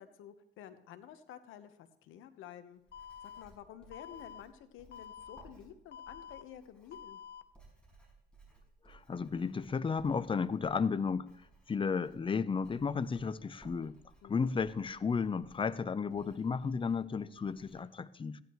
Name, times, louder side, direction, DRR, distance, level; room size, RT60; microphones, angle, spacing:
voice 1, 0.0-2.8 3.2-7.2 14.2-14.6, left 10 dB, 90° left, 10 dB, 1.1 m, -51 dB
Writing, 2.7-17.8, right 3 dB, 5° left, 5.6 m, -62 dB
Alarm, 2.9-3.4 3.9-4.4 4.9-5.4 5.9-6.4 6.9-7.4, left 8 dB, 60° left, 0.8 m, -48 dB
voice 2, 8.9-11.3 11.7-14.0 14.3-18.4, left 5 dB, 25° left, 15 dB, 0.6 m, -33 dB
15.5 x 10.5 x 3.1 m, 0.78 s
cardioid pair, 90°, 20 cm